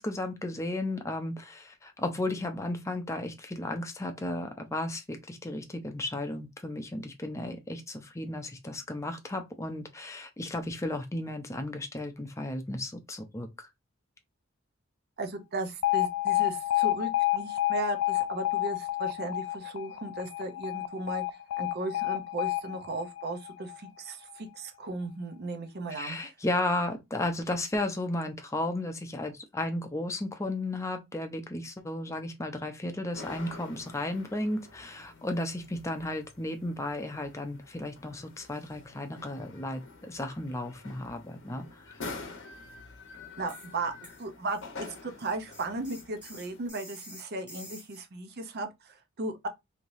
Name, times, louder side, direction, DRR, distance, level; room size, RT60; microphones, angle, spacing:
voice 1, 0.0-13.7 25.9-42.0, left 1 dB, 15° left, 0.5 m, -34 dB
voice 2, 15.2-21.2 21.6-26.3 43.4-43.9 44.2-49.5, right 2 dB, 55° right, 0.6 m, -36 dB
Alarm, 15.8-23.9, left 15 dB, 85° left, 0.3 m, -29 dB
sound 1, 33.1-46.7, left 3 dB, 70° left, 0.8 m, -47 dB
sound 2, 43.5-43.7 44.0-48.0, equal, 5° right, 1.2 m, -49 dB
3.2 x 2.8 x 2.6 m
head